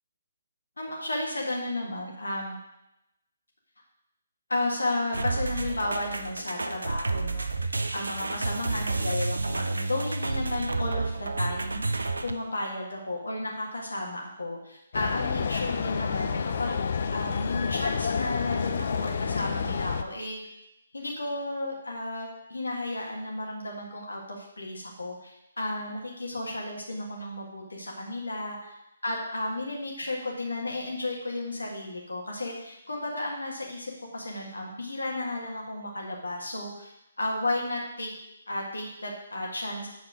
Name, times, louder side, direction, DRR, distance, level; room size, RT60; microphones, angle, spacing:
voice 1, 0.8-2.6 4.5-16.8 17.1-20.4 20.9-28.7 29.0-38.1 38.5-39.9, left 2 dB, 70° left, -2 dB, 1.8 m, -33 dB
sound 1, 5.1-12.3, right 3 dB, 70° right, 0.6 m, -30 dB
sound 2, 14.9-20.0, left 6 dB, 50° left, 0.5 m, -29 dB
7.7 x 4.3 x 6.1 m, 0.87 s
figure-of-eight pair, 140°, 0 cm